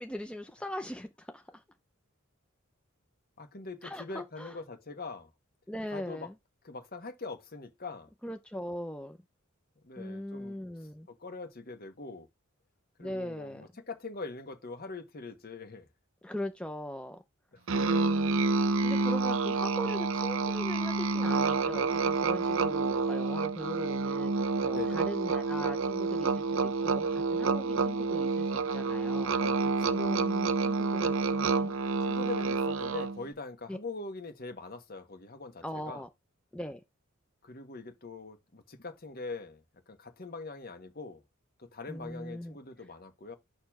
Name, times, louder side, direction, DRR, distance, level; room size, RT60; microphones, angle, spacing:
voice 1, 0.0-1.6 3.8-4.6 5.7-6.3 8.2-9.2 10.0-11.1 13.0-13.7 16.2-17.2 17.8-29.3 29.9-31.7 32.2-32.3 33.7-33.8 35.6-36.1 36.5-36.8 41.9-42.6, left 1 dB, 5° left, 0.6 m, -40 dB
voice 2, 3.4-5.3 5.9-6.3 6.6-8.1 9.8-10.6 11.1-12.3 13.0-15.9 17.5-17.6 19.8-19.9 24.7-25.0 29.4-30.0 32.0-36.0 37.4-41.2 41.6-43.4, left 3 dB, 45° left, 1.4 m, -42 dB
Musical instrument, 17.7-33.2, right 4 dB, 65° right, 0.8 m, -28 dB
6.8 x 3.1 x 5.9 m
head